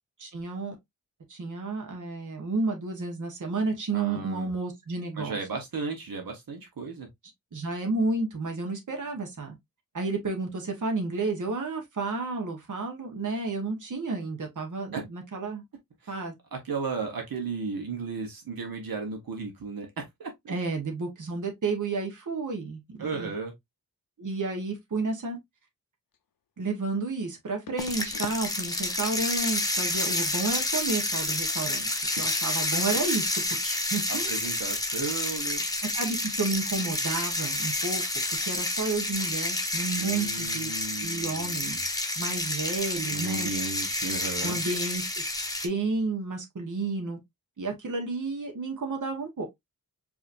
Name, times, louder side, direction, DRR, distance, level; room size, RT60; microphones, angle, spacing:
voice 1, 0.2-0.7 1.3-5.4 7.5-9.5 9.9-15.6 16.1-16.3 20.5-23.3 24.2-25.4 26.6-34.3 35.9-38.0 38.4-41.8 42.2-43.5 44.4-45.2 45.6-47.2 47.6-49.5, right 3 dB, 60° right, 1.3 m, -31 dB
voice 2, 3.9-4.5 5.2-7.1 14.9-15.0 16.0-16.2 16.5-20.5 23.0-23.5 32.1-32.3 34.1-35.6 40.0-41.9 43.1-44.6, right 4 dB, 80° right, 1.2 m, -35 dB
sound 1, 26.1-26.2 27.7-28.4 28.7-29.1 29.4-29.6 32.5-32.6 32.9-33.1 33.4-33.5, left 8 dB, 70° left, 0.5 m, -42 dB
sound 2, 27.8-45.7, left 2 dB, 10° left, 1.0 m, -29 dB
4.9 x 2.9 x 2.6 m
wide cardioid pair, 120°, 35 cm